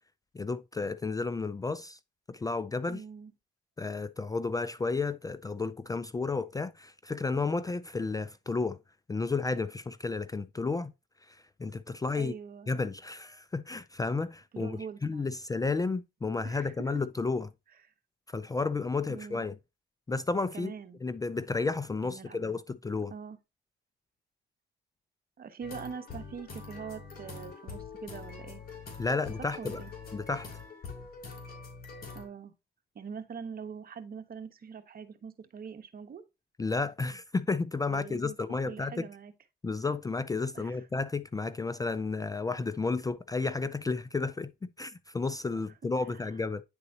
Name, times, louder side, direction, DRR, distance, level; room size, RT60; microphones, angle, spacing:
voice 1, 0.3-2.0 2.3-3.0 3.8-8.8 9.1-10.9 11.3-12.3 12.7-17.5 18.3-19.5 20.1-20.7 21.0-23.1 29.0-29.8 30.1-30.5 36.6-39.1 39.6-44.5 44.8-46.6, left 3 dB, 20° left, 0.4 m, -32 dB
voice 2, 2.9-3.3 12.2-12.7 14.5-15.3 16.4-16.9 19.1-19.4 20.5-21.0 22.0-22.4 23.1-23.4 25.4-28.6 29.4-29.9 32.1-32.5 32.9-36.2 37.9-38.4 38.7-39.3 40.5-40.9 46.1-46.3, right 6 dB, 50° right, 1.1 m, -43 dB
sound 1, 25.6-32.3, left 5 dB, 50° left, 2.8 m, -44 dB
9.7 x 3.9 x 2.8 m
cardioid pair, 90°, 20 cm